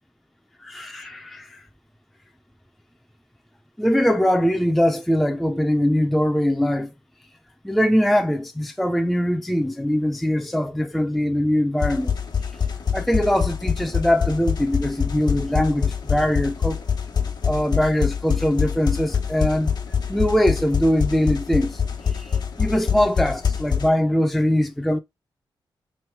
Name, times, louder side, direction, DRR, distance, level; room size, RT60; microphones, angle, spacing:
voice 1, 0.6-1.6 3.8-6.9 7.6-12.1 12.9-16.8 17.4-19.7 20.1-25.0, equal, ahead, 0.4 m, -22 dB
sound 1, 11.8-23.9, left 7 dB, 55° left, 1.1 m, -25 dB
3.2 x 3.0 x 4.5 m
cardioid pair, 100°, 9 cm